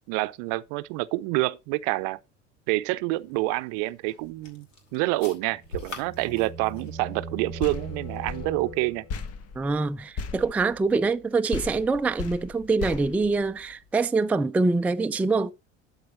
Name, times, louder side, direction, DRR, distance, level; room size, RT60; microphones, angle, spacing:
voice 1, 0.1-2.2 2.7-4.7 4.9-9.0, right 21 dB, 55° right, 0.6 m, -27 dB
sound 1, 3.1-8.3, left 3 dB, 85° left, 2.7 m, -46 dB
sound 2, 5.4-9.3, right 2 dB, 65° left, 3.8 m, -40 dB
sound 3, 7.6-11.2 11.5-14.0, left 5 dB, 40° left, 1.2 m, -37 dB
voice 2, 9.6-15.5, right 3 dB, 5° right, 0.4 m, -25 dB
12.0 x 4.1 x 5.4 m
figure-of-eight pair, 70°, 37 cm